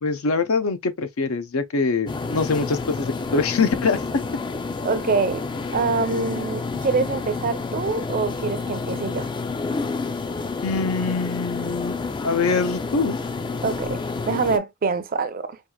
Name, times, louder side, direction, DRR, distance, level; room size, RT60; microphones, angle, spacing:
voice 1, 0.0-4.0 10.6-12.0 12.2-13.2, left 4 dB, 90° left, 0.6 m, -23 dB
sound 1, 2.1-14.6, left 4 dB, 20° left, 0.3 m, -29 dB
voice 2, 4.8-9.3 13.6-15.6, right 4 dB, 45° right, 0.5 m, -25 dB
4.4 x 2.4 x 2.2 m
head